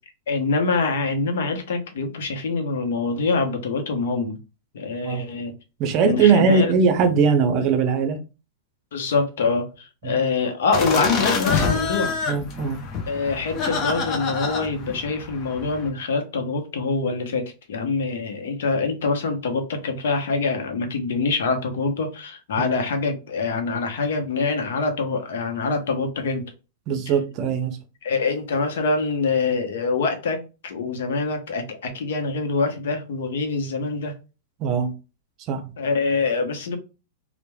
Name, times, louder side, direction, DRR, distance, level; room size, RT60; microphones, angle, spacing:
voice 1, 0.3-4.4 4.7-5.5 6.0-6.7 8.9-12.1 13.1-26.4 28.0-34.1 35.8-36.8, left 4 dB, 80° left, 0.7 m, -25 dB
voice 2, 5.8-8.2 10.0-10.2 12.3-12.8 22.6-22.7 26.9-27.8 34.6-34.9 35.4-35.6, right 5 dB, 40° right, 0.6 m, -20 dB
sound 1, 10.7-15.9, left 5 dB, 35° left, 0.6 m, -27 dB
3.0 x 2.1 x 2.2 m
hypercardioid pair, 135°, 0 cm